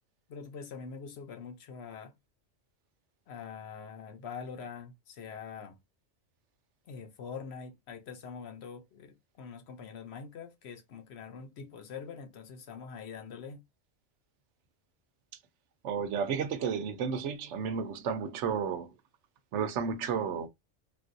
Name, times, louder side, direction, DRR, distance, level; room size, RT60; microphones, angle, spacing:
voice 1, 0.3-2.1 3.3-5.8 6.9-13.6, left 6 dB, 65° left, 0.9 m, -44 dB
voice 2, 15.8-18.9 19.5-20.5, right 6 dB, 80° right, 0.9 m, -32 dB
3.5 x 2.4 x 2.6 m
omnidirectional pair, 1.2 m